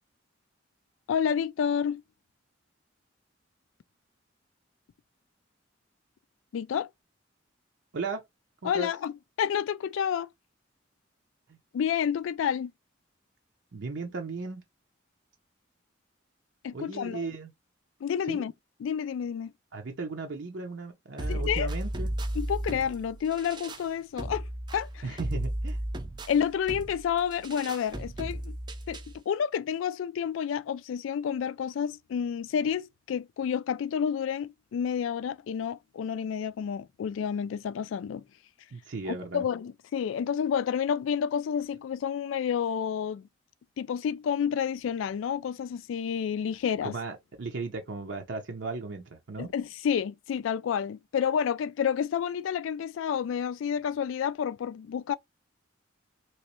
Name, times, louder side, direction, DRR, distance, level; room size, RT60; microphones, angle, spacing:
voice 1, 1.1-2.0 6.5-6.9 8.6-9.1 9.4-10.3 11.7-12.7 16.6-17.3 18.0-18.5 18.8-19.5 21.3-21.7 22.4-24.5 24.7-25.0 26.3-28.5 28.9-38.2 39.1-43.3 43.8-46.9 49.4-55.2, left 8 dB, 85° left, 0.3 m, -29 dB
voice 2, 13.7-14.6 16.7-17.5 18.3-18.4 19.7-22.1 25.0-25.8 38.7-39.4 46.8-49.5, right 4 dB, 65° right, 0.7 m, -36 dB
sound 1, 21.2-29.2, right 1 dB, 25° right, 0.5 m, -35 dB
3.0 x 3.0 x 3.0 m
head